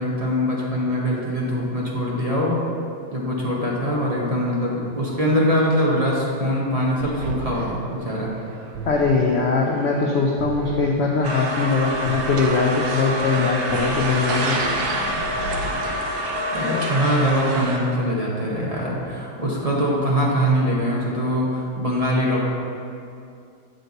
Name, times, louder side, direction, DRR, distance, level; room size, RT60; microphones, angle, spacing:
voice 1, 0.0-2.6 3.1-8.3 16.5-22.5, equal, 25° right, -5 dB, 1.0 m, -23 dB
sound 1, 7.0-16.4, right 3 dB, 85° right, 1.3 m, -35 dB
voice 2, 8.9-14.6, left 4 dB, 70° left, 0 dB, 0.6 m, -21 dB
sound 2, 11.2-17.8, equal, 70° right, 1.3 m, -26 dB
7.8 x 6.6 x 4.0 m, 2.4 s
omnidirectional pair, 1.8 m